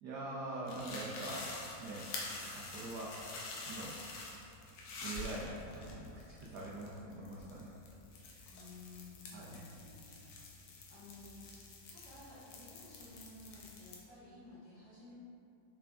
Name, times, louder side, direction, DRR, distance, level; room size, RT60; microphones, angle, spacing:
voice 1, 0.0-2.1 2.5-3.2 3.7-4.0 5.0-7.7 9.3-9.7, right 2 dB, 85° right, -5 dB, 0.9 m, -44 dB
sound 1, 0.7-13.9, left 3 dB, 90° left, 1.5 m, -48 dB
voice 2, 8.5-10.2 10.5-15.1, left 2 dB, 45° left, -12 dB, 1.2 m, -55 dB
4.9 x 2.2 x 3.4 m, 2.7 s
omnidirectional pair, 2.3 m